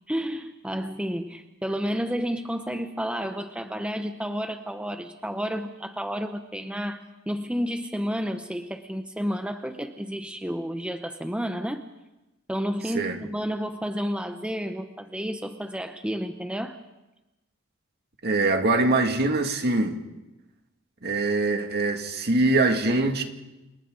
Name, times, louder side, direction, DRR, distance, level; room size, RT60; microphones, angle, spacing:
voice 1, 0.1-11.8 12.5-16.8, equal, 5° right, 6 dB, 0.8 m, -31 dB
voice 2, 18.2-20.0 21.0-23.2, right 2 dB, 50° right, 4 dB, 2.2 m, -23 dB
29.0 x 28.5 x 3.9 m, 1.0 s
head